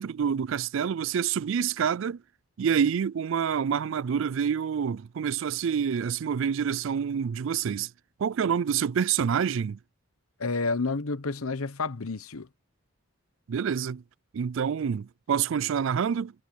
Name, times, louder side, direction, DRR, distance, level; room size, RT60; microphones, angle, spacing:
voice 1, 0.0-2.2 2.6-7.9 8.2-9.8 13.5-14.0 14.3-16.3, right 7 dB, 65° right, 0.3 m, -27 dB
voice 2, 10.4-12.5, left 3 dB, 90° left, 1.1 m, -30 dB
head